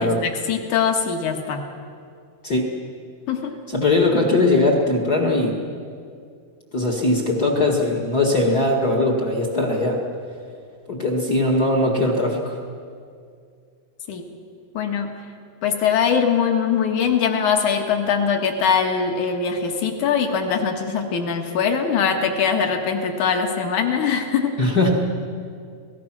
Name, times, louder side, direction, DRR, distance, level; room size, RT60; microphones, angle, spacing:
voice 1, 0.0-1.6 3.3-3.5 14.1-14.2 14.7-15.1 15.6-24.5, left 6 dB, 60° left, 4 dB, 2.8 m, -22 dB
voice 2, 3.7-5.6 6.7-10.0 10.9-12.6 24.6-24.9, left 2 dB, 35° left, -1 dB, 1.6 m, -20 dB
27.0 x 18.5 x 6.1 m, 2.3 s
omnidirectional pair, 4.4 m